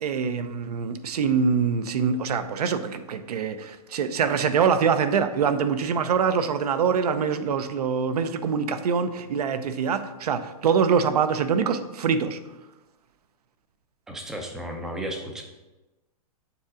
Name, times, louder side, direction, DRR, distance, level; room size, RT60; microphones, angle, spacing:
voice 1, 0.0-12.4, right 6 dB, 90° right, 10 dB, 0.7 m, -24 dB
voice 2, 14.1-15.4, right 1 dB, 5° right, 3 dB, 0.3 m, -34 dB
7.0 x 3.8 x 4.8 m, 1.1 s
hypercardioid pair, 170°, 19 cm